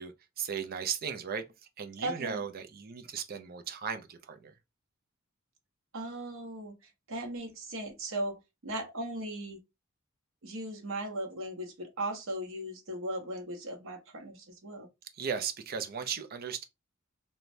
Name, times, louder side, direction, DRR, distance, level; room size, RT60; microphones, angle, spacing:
voice 1, 0.0-1.5 1.8-4.5 15.1-16.6, right 7 dB, 50° right, 0.4 m, -36 dB
voice 2, 2.0-2.4 5.9-9.6 10.4-14.9, right 1 dB, 80° right, 0.8 m, -37 dB
3.1 x 2.2 x 2.5 m
head